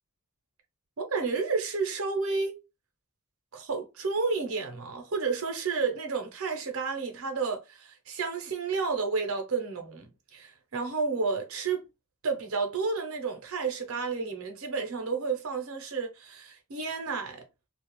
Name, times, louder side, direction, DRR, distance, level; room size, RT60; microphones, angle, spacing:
voice 1, 1.0-2.6 3.5-11.8 12.2-17.4, right 4 dB, 70° right, 0.7 m, -31 dB
2.3 x 2.1 x 2.9 m
head